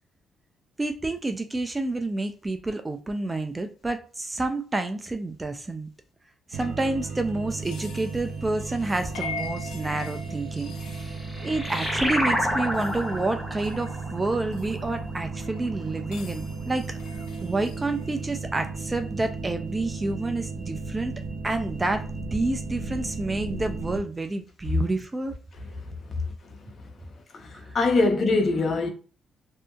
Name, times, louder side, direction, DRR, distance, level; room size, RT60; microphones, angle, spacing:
voice 1, 0.8-5.9 6.5-16.9 17.4-21.1 21.4-25.3 27.5-27.7, right 2 dB, 20° right, 0.4 m, -29 dB
sound 1, 6.5-24.0, right 3 dB, 85° right, 0.5 m, -35 dB
sound 2, 7.6-14.7 15.4-18.3, left 3 dB, 90° left, 0.5 m, -43 dB
sound 3, 10.8-15.8, equal, ahead, 0.8 m, -30 dB
voice 2, 25.8-26.9 27.3-28.9, left 3 dB, 45° left, 0.7 m, -25 dB
2.7 x 2.5 x 2.3 m
cardioid pair, 90°, 0 cm